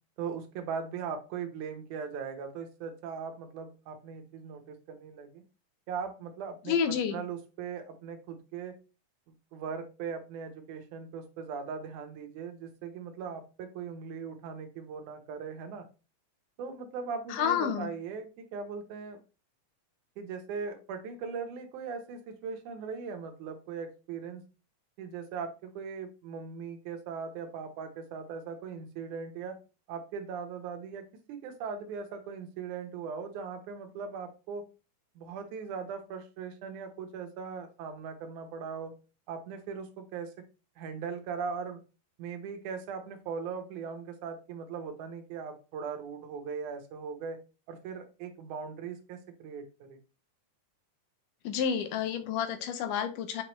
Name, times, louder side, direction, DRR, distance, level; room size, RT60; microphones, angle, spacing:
voice 1, 0.2-5.4 5.9-8.8 9.5-15.8 16.6-19.2 20.2-24.4 25.0-29.6 29.9-34.6 35.2-38.9 39.3-40.3 40.8-41.8 42.2-47.4 47.7-50.0, right 6 dB, 75° right, 2.4 m, -39 dB
voice 2, 6.7-7.2 17.3-17.9 51.4-53.4, left 7 dB, 80° left, 2.3 m, -29 dB
6.9 x 4.6 x 3.0 m
omnidirectional pair, 3.7 m